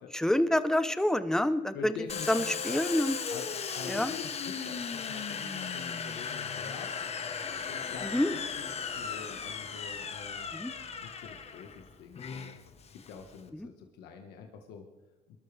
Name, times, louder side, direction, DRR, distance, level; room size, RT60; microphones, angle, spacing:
voice 1, 0.1-1.9 2.3-3.1 3.9-4.1 8.1-8.4 10.5-10.7 13.6-13.7, left 1 dB, 5° left, 13 dB, 0.7 m, -27 dB
voice 2, 1.7-2.8 3.3-3.5 3.7-7.1 7.7-10.6 11.0-12.5 13.1-14.8, left 6 dB, 85° left, 4 dB, 1.4 m, -46 dB
Domestic sounds home sounds, 2.1-13.5, left 6 dB, 40° left, 1.2 m, -37 dB
22.5 x 12.5 x 3.4 m, 1.1 s
cardioid pair, 110°, 17 cm